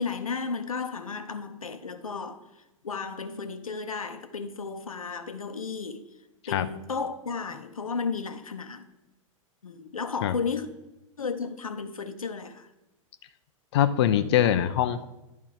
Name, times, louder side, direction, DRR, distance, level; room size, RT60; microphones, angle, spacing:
voice 1, 0.0-2.4 2.8-6.1 6.5-8.9 9.6-10.7 11.2-12.7, left 5 dB, 75° left, 0.8 m, -33 dB
voice 2, 13.7-15.1, left 10 dB, 50° left, 0.4 m, -23 dB
11.0 x 4.6 x 4.8 m
figure-of-eight pair, 100°, 18 cm